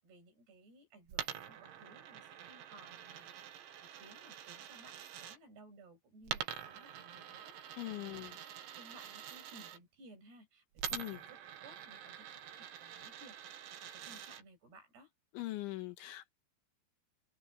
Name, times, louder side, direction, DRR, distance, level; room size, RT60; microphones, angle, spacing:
voice 1, 0.0-8.3 8.7-15.1, right 2 dB, 55° right, 8.5 m, -60 dB
Coin (dropping), 1.1-5.4 6.2-9.8 10.8-14.4, right 10 dB, 70° right, 4.1 m, -46 dB
voice 2, 7.8-8.4 10.9-11.2 15.3-16.3, left 17 dB, 75° left, 3.4 m, -41 dB
omnidirectional pair, 5.9 m